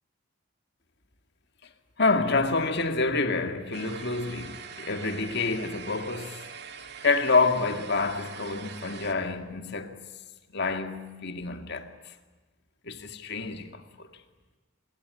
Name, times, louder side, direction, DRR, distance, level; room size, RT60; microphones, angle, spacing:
voice 1, 2.0-6.4 7.0-9.9 10.5-12.1 12.8-14.1, left 3 dB, 55° left, 2.3 m, -28 dB
sound 1, 3.7-9.1, right 6 dB, 55° right, 2.4 m, -43 dB
25.5 x 23.0 x 9.9 m
head